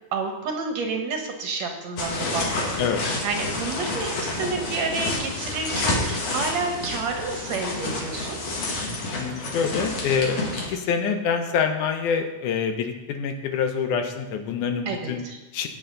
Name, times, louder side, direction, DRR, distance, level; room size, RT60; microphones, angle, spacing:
voice 1, 0.1-2.6 3.2-8.4 14.9-15.4, right 4 dB, 65° right, 4 dB, 2.2 m, -29 dB
sound 1, 2.0-10.7, left 2 dB, 55° left, 2.9 m, -29 dB
voice 2, 9.2-10.4 10.7-15.2 15.5-15.7, left 6 dB, 75° left, 6 dB, 2.3 m, -26 dB
15.0 x 9.0 x 3.9 m, 1.1 s
omnidirectional pair, 3.8 m